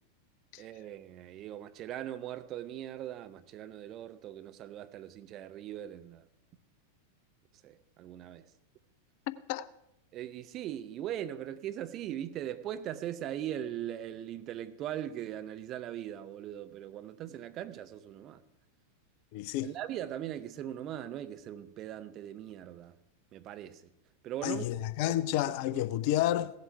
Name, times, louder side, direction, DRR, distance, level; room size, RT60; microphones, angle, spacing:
voice 1, 0.6-6.2 7.6-8.5 10.1-18.4 19.6-22.9 23.3-23.8 24.2-25.2 25.7-25.8, right 11 dB, 35° right, 0.6 m, -40 dB
voice 2, 9.3-9.7 19.3-19.7 24.4-26.5, left 13 dB, 45° left, 0.4 m, -30 dB
16.0 x 7.7 x 4.6 m
figure-of-eight pair, 90°, 0 cm